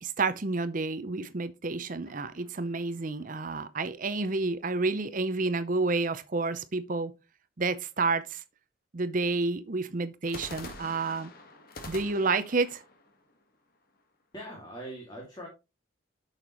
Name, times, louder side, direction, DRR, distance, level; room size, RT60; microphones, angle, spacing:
voice 1, 0.0-7.1 7.6-8.4 8.9-11.3 11.9-12.8, right 3 dB, 40° right, 0.6 m, -30 dB
sound 1, 2.0-3.5 10.2-14.2, left 2 dB, 45° left, 1.5 m, -47 dB
voice 2, 14.3-15.5, right 1 dB, 20° left, 2.2 m, -41 dB
8.9 x 6.5 x 3.0 m
head